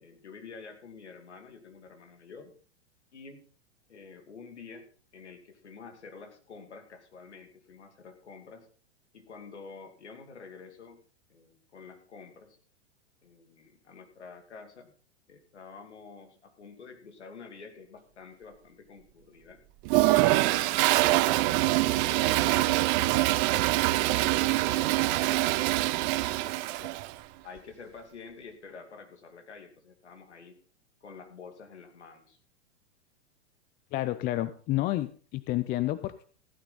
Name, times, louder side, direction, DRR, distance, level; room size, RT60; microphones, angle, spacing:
voice 1, 0.0-2.5 3.1-3.5 3.9-4.9 5.1-8.7 9.1-11.0 11.3-12.6 13.2-14.9 15.3-19.6 20.1-22.7 23.0-27.0 27.4-30.6 31.0-32.4, left 5 dB, 80° left, 5 dB, 2.7 m, -48 dB
Toilet flush, 19.9-27.1, right 18 dB, 40° right, 0.7 m, -24 dB
voice 2, 33.9-36.2, left 16 dB, 25° left, 14 dB, 0.5 m, -30 dB
15.5 x 10.0 x 4.0 m, 0.42 s
hypercardioid pair, 105°, 34 cm